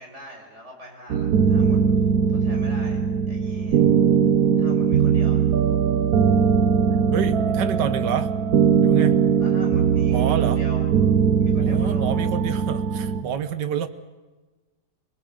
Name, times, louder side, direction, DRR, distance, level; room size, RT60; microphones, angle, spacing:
voice 1, 0.0-1.8 2.3-3.0 3.3-3.8 4.6-5.5 9.4-10.8 11.4-12.1, equal, 40° right, 1 dB, 5.9 m, -42 dB
sound 1, 1.1-13.2, right 7 dB, 60° right, 1.3 m, -20 dB
voice 2, 7.1-8.3 8.8-9.2 10.1-10.6 11.6-13.9, right 8 dB, 80° right, 11 dB, 1.8 m, -28 dB
25.5 x 20.5 x 7.9 m, 1.2 s
omnidirectional pair, 1.9 m